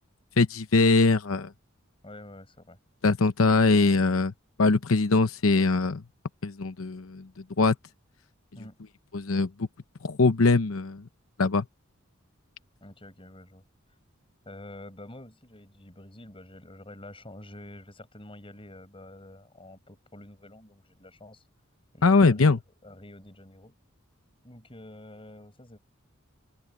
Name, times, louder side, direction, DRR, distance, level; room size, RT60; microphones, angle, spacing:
voice 1, 0.4-1.5 3.0-4.3 4.6-6.0 6.4-7.3 7.6-7.7 9.1-9.7 10.0-11.0 11.4-11.6 22.0-22.6, left 3 dB, 85° left, 0.8 m, -22 dB
voice 2, 2.0-2.8 8.5-8.8 12.8-13.6 14.4-21.4 21.9-23.7 24.4-25.8, left 1 dB, 25° left, 6.2 m, -47 dB
open air
head